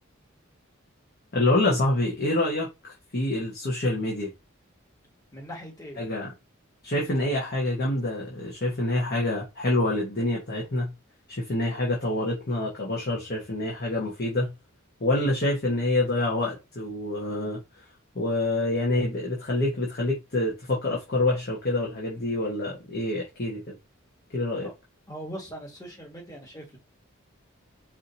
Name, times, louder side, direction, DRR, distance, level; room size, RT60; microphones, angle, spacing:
voice 1, 1.3-2.7 3.1-4.3 6.0-6.3 6.8-10.9 11.3-14.5 15.0-17.8 18.1-23.7 24.3-24.7, left 2 dB, 50° left, 1.2 m, -26 dB
voice 2, 5.3-6.0 24.6-24.7 25.1-26.8, equal, 15° left, 1.6 m, -40 dB
4.9 x 2.8 x 2.7 m
head